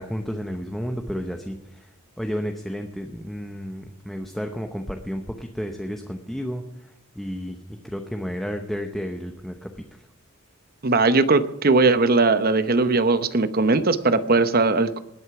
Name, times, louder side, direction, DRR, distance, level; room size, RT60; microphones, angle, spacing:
voice 1, 0.0-1.9 2.2-6.6 7.2-7.6 7.8-9.9, equal, ahead, 4 dB, 0.8 m, -31 dB
voice 2, 10.8-15.0, right 3 dB, 45° right, 11 dB, 0.9 m, -19 dB
20.0 x 8.0 x 5.9 m, 0.93 s
head